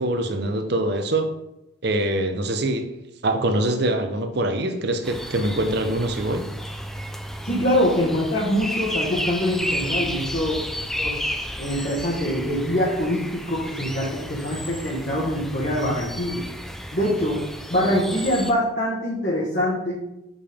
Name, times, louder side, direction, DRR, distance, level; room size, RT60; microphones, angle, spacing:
voice 1, 0.0-1.3 1.8-2.9 3.2-6.4, right 1 dB, 55° right, 0.7 m, -24 dB
sound 1, 5.0-18.5, equal, ahead, 0.3 m, -32 dB
voice 2, 7.4-10.6 11.0-11.2 11.6-16.4 16.9-17.4 17.7-20.0, equal, 45° left, 1.3 m, -24 dB
6.8 x 5.2 x 3.5 m
head